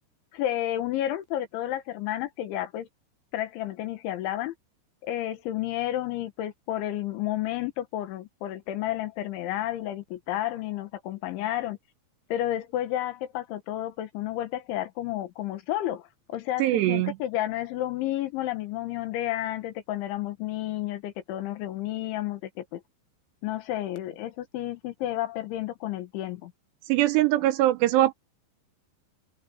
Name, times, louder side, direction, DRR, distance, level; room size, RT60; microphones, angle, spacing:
voice 1, 0.3-2.9 3.3-4.5 5.0-11.8 12.3-22.8 23.4-26.5, left 13 dB, 80° left, 3.9 m, -31 dB
voice 2, 16.6-17.1 26.9-28.1, right 15 dB, 85° right, 2.6 m, -22 dB
omnidirectional pair, 5.3 m